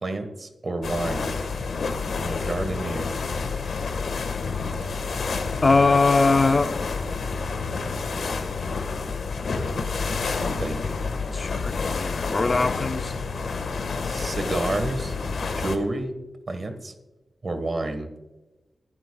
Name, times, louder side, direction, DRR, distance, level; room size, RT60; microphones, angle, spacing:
voice 1, 0.0-1.3 2.1-3.1 10.4-11.0 14.0-15.1 15.5-16.1 16.5-16.9 17.4-18.1, right 2 dB, 40° right, 1.3 m, -30 dB
sound 1, 0.8-15.8, left 4 dB, 80° left, 1.4 m, -29 dB
voice 2, 5.6-6.8 11.3-13.1, left 3 dB, 35° left, 0.5 m, -21 dB
21.0 x 11.0 x 2.3 m
wide cardioid pair, 150°, 0 cm